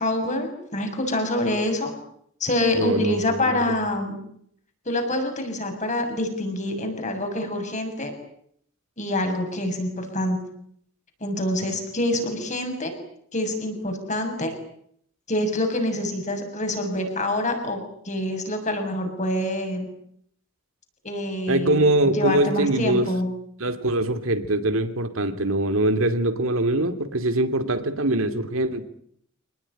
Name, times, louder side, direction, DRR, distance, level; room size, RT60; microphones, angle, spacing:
voice 1, 0.0-1.9 2.4-4.1 4.8-8.1 9.0-10.4 11.2-12.9 13.3-14.5 15.3-19.9 21.0-23.3, left 1 dB, 35° left, 5 dB, 6.9 m, -26 dB
voice 2, 2.7-3.5 21.5-23.1 23.6-28.9, right 1 dB, 70° right, 9 dB, 2.5 m, -23 dB
27.0 x 19.5 x 10.0 m, 0.69 s
head